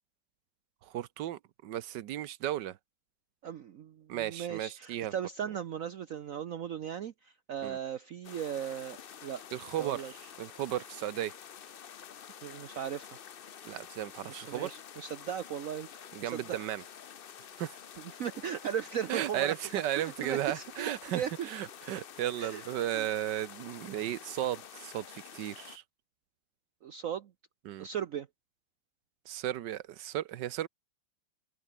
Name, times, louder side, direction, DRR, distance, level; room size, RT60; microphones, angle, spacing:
voice 1, 0.8-2.8 4.1-5.1 7.6-7.8 9.5-11.4 13.6-14.7 16.1-16.8 17.6-17.8 19.1-25.8 27.6-27.9 29.3-30.7, right 12 dB, 75° right, 1.4 m, -35 dB
voice 2, 3.4-9.4 9.8-10.1 12.4-13.2 14.2-16.6 18.0-19.5 19.9-21.5 22.4-22.7 22.9-23.1 26.8-27.3 27.8-28.3, right 9 dB, 55° right, 1.1 m, -37 dB
sound 1, 8.2-25.8, left 8 dB, 60° left, 0.5 m, -49 dB
omnidirectional pair, 1.9 m